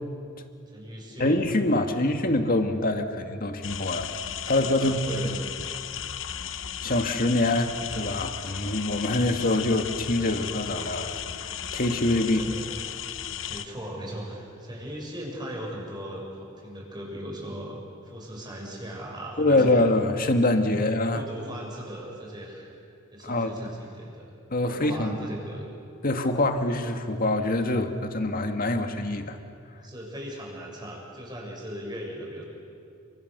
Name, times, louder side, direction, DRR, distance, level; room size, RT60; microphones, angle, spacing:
voice 1, 0.7-2.2 4.7-5.4 12.2-12.6 13.5-19.8 20.7-20.8 21.1-22.7 23.1-24.3 24.6-25.7 29.7-32.4, equal, 20° right, -1 dB, 6.8 m, -38 dB
voice 2, 1.2-4.1 4.4-5.0 6.8-11.2 11.7-12.4 19.4-21.2 23.2-23.7 24.5-25.3 26.0-29.4, left 2 dB, 45° left, 6 dB, 1.9 m, -25 dB
sound 1, 3.6-13.7, left 9 dB, 70° left, 1.0 m, -35 dB
30.0 x 25.5 x 6.8 m, 2.4 s
head